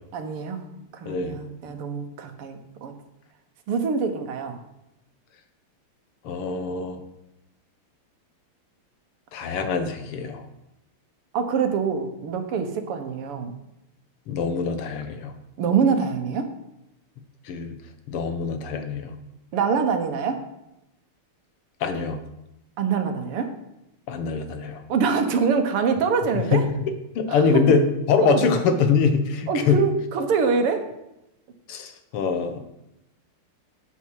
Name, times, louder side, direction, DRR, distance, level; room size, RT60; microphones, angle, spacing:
voice 1, 0.1-0.6 0.9-2.9 3.7-4.6 11.3-13.5 15.6-16.5 19.5-20.4 22.8-23.5 24.9-26.6 27.3-27.6 28.2-28.5 29.5-30.9, right 5 dB, 85° right, 7 dB, 2.1 m, -24 dB
voice 2, 1.0-1.4 6.2-7.0 9.3-10.4 14.3-15.3 17.5-17.7 18.1-19.2 21.8-22.2 24.1-24.8 26.3-26.6 27.2-29.8 31.7-32.6, left 5 dB, 80° left, 8 dB, 2.0 m, -23 dB
11.5 x 8.7 x 4.7 m, 0.87 s
omnidirectional pair, 2.4 m